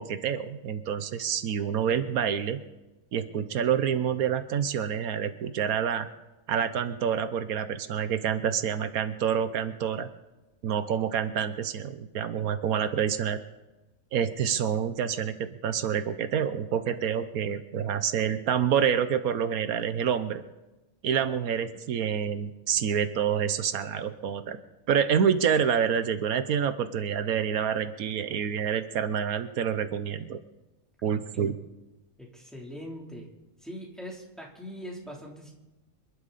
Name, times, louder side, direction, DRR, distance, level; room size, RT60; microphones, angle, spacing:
voice 1, 0.0-2.6 3.1-6.1 6.5-10.1 10.6-13.4 14.1-20.4 21.0-24.6 24.9-30.4 31.0-31.6, right 8 dB, 85° right, 11 dB, 1.3 m, -27 dB
voice 2, 21.4-21.8 32.2-33.3 33.6-35.5, equal, ahead, -2 dB, 3.3 m, -42 dB
27.0 x 11.5 x 4.2 m, 1.1 s
omnidirectional pair, 1.5 m